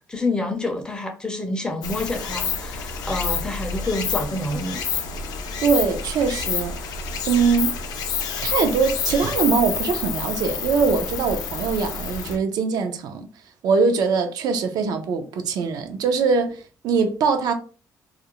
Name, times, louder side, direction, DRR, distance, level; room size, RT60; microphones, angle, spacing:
voice 1, 0.1-4.8, left 2 dB, 10° left, 0.5 m, -27 dB
Stream, 1.8-12.4, left 5 dB, 75° left, 0.5 m, -28 dB
voice 2, 5.6-6.8 7.2-7.8 8.4-13.3 13.6-17.5, right 5 dB, 70° right, 0.4 m, -22 dB
2.4 x 2.0 x 2.9 m
cardioid pair, 135°, 7 cm